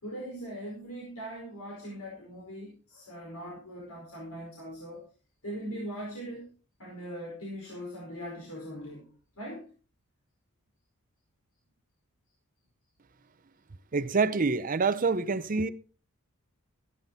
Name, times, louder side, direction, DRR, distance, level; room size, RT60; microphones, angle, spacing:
voice 1, 0.0-5.1 5.4-6.5 6.8-9.1 9.3-9.7, equal, 75° left, 4.8 m, -40 dB
voice 2, 13.9-15.7, right 4 dB, 40° right, 0.6 m, -26 dB
14.5 x 10.5 x 4.0 m
head